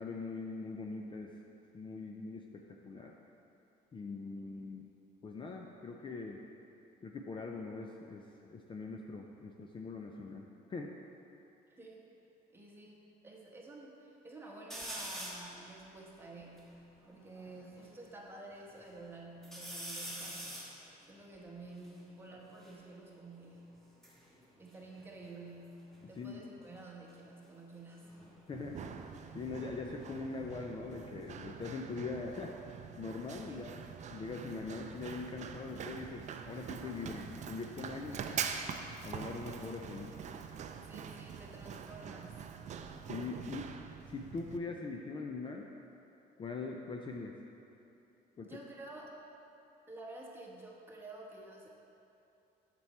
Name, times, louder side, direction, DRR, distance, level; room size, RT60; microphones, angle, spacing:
voice 1, 0.0-1.3 1.7-3.1 3.9-4.9 5.2-6.4 7.0-11.0 26.1-26.4 28.5-28.8 29.3-32.5 33.0-38.2 39.0-40.1 43.1-43.7 44.1-45.7 46.4-47.4 48.4-48.6, left 4 dB, 30° left, 1 dB, 0.5 m, -42 dB
voice 2, 11.7-12.0 12.5-16.7 17.1-20.5 21.1-23.7 24.6-28.1 33.5-33.9 38.0-38.3 40.9-42.4 48.4-49.2 49.9-51.7, right 2 dB, 15° right, -3 dB, 1.3 m, -50 dB
sound 1, 14.7-15.5 16.1-16.2 16.4-17.9 18.4-19.0 19.4-22.8 23.7-25.6 25.9-26.4 28.0-30.6 31.0-31.7, right 1 dB, ahead, 1.4 m, -47 dB
Run, 28.5-44.6, right 7 dB, 45° right, 0.5 m, -44 dB
7.6 x 6.1 x 4.3 m, 2.9 s
cardioid pair, 110°, 17 cm